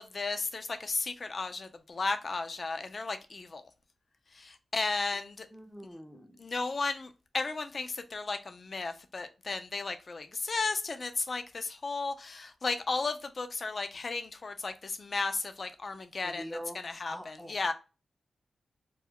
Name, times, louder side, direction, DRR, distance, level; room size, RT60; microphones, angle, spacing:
voice 1, 0.0-3.6 4.3-5.5 6.4-17.7, left 3 dB, 55° left, 0.4 m, -34 dB
voice 2, 5.5-6.4 16.2-16.8 17.1-17.6, equal, ahead, 0.6 m, -43 dB
2.3 x 2.1 x 3.5 m
supercardioid pair, 45°, 0 cm